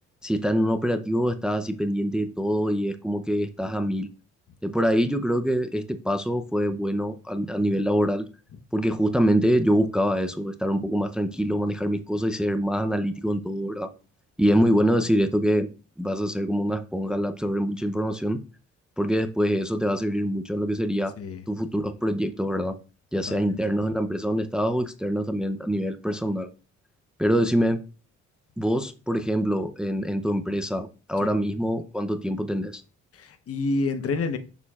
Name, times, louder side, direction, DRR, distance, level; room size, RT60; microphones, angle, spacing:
voice 1, 0.2-4.1 4.6-8.3 8.7-13.9 14.4-15.7 16.0-18.4 19.0-21.2 21.5-22.8 23.1-26.5 27.2-27.8 28.6-32.8, equal, 5° right, 0.6 m, -25 dB
voice 2, 23.2-23.6 31.2-31.4 33.1-34.4, left 3 dB, 50° left, 1.0 m, -28 dB
6.9 x 6.6 x 2.4 m
cardioid pair, 90°, 30 cm